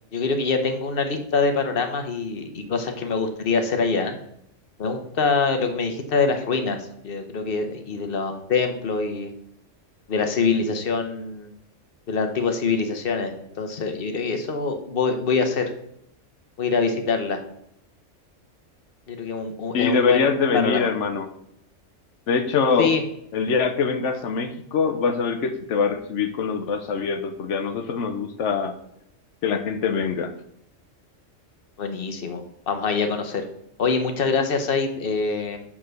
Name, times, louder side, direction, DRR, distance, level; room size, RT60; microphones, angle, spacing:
voice 1, 0.1-4.2 4.8-6.8 7.0-9.3 10.1-11.5 12.1-15.6 16.6-17.4 19.1-20.9 22.8-23.0 31.8-33.4 33.8-35.6, left 4 dB, 50° left, 6 dB, 1.1 m, -24 dB
voice 2, 19.7-21.3 22.3-22.9 23.3-28.7 29.4-30.3, left 5 dB, 70° left, 9 dB, 1.1 m, -23 dB
7.2 x 3.7 x 6.4 m, 0.74 s
omnidirectional pair, 1.3 m